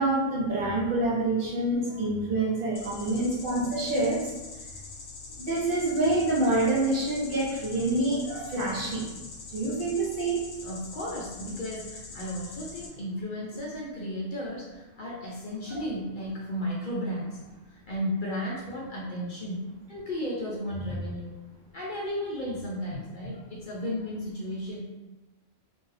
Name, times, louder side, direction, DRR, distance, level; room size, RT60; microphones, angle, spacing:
voice 1, 0.0-4.2 5.4-9.0 9.5-10.4 15.7-15.8, right 2 dB, 55° right, -5 dB, 0.7 m, -26 dB
sound 1, 2.7-12.9, left 4 dB, 90° left, 1.0 m, -43 dB
voice 2, 10.6-21.4 21.7-24.8, equal, 55° left, -5 dB, 0.6 m, -34 dB
2.6 x 2.2 x 3.2 m, 1.1 s
omnidirectional pair, 1.3 m